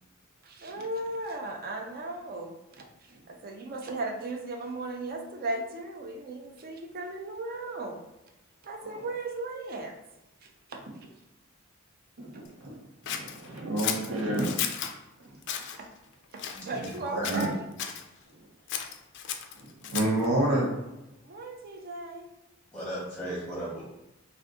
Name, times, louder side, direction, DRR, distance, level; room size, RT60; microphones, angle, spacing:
voice 1, 0.4-2.8 3.3-8.0 8.6-9.9 10.4-10.8 15.8-15.9 16.3-17.6 21.2-22.3, right 2 dB, 45° right, 3 dB, 0.4 m, -36 dB
voice 2, 12.2-14.6 15.2-15.3 17.3-17.5 19.6-20.7, right 1 dB, 90° right, -3 dB, 0.8 m, -29 dB
Scissors, 13.1-14.9 15.4-15.8 16.4-17.0 17.2-18.0 18.7-20.3, left 8 dB, 55° left, 0.3 m, -34 dB
voice 3, 16.5-17.4 22.7-23.8, right 1 dB, 5° left, -6 dB, 0.7 m, -36 dB
2.5 x 2.5 x 3.6 m, 0.93 s
head